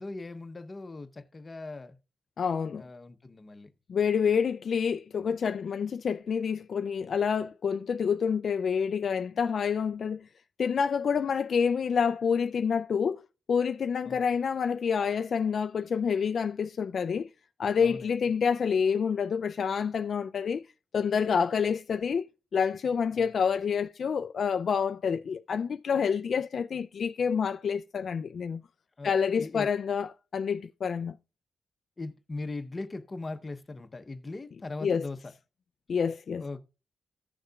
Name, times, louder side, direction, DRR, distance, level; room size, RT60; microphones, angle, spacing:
voice 1, 0.0-2.0 2.7-3.7 14.1-14.3 17.8-18.1 23.1-23.4 29.0-29.1 29.4-29.7 32.0-35.3 36.4-36.6, left 3 dB, 25° left, 0.8 m, -39 dB
voice 2, 2.4-2.8 3.9-10.2 10.6-13.2 13.5-17.3 17.6-20.6 20.9-28.6 29.0-31.1 34.8-35.1 35.9-36.4, left 6 dB, 55° left, 0.3 m, -28 dB
15.0 x 6.5 x 2.3 m
wide cardioid pair, 145°, 0 cm